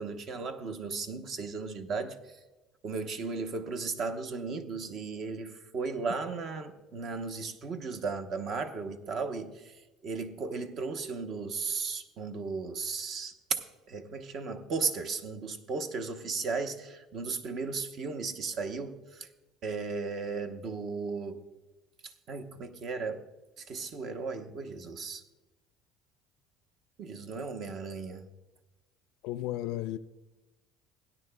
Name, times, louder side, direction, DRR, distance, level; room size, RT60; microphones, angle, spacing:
voice 1, 0.0-2.2 2.8-9.6 10.0-13.6 13.9-19.3 19.6-21.4 22.3-23.2 23.7-25.2 27.0-28.3, right 4 dB, 50° right, 0.8 m, -35 dB
voice 2, 29.2-30.0, left 14 dB, 75° left, 0.4 m, -33 dB
17.0 x 9.9 x 2.2 m
cardioid pair, 120°, 0 cm